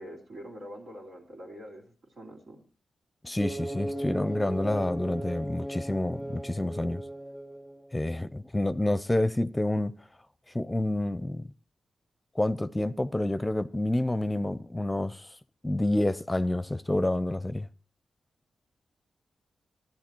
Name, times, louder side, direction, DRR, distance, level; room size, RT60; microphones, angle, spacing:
voice 1, 0.0-2.6, equal, 75° right, 3.5 m, -45 dB
voice 2, 3.2-7.0 7.9-9.9 10.5-11.5 12.4-15.3 15.6-17.7, left 1 dB, 15° left, 0.7 m, -28 dB
sound 1, 3.4-8.1, right 1 dB, 15° right, 2.3 m, -37 dB
14.5 x 10.5 x 4.5 m
supercardioid pair, 45°, 0 cm